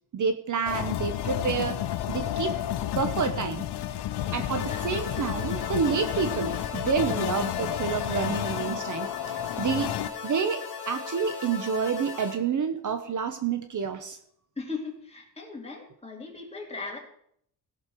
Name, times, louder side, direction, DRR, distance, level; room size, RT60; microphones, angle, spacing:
voice 1, 0.1-1.8 2.1-2.5 2.9-3.6 4.3-10.0 10.2-14.2, right 6 dB, 50° right, 8 dB, 1.0 m, -29 dB
sound 1, 0.7-10.1, left 11 dB, 75° left, 0.7 m, -31 dB
voice 2, 4.5-4.9 14.6-17.0, left 4 dB, 15° left, -1 dB, 2.9 m, -38 dB
sound 2, 4.6-12.4, left 7 dB, 50° left, 2.3 m, -38 dB
17.0 x 6.5 x 4.6 m, 0.67 s
cardioid pair, 120°, 40 cm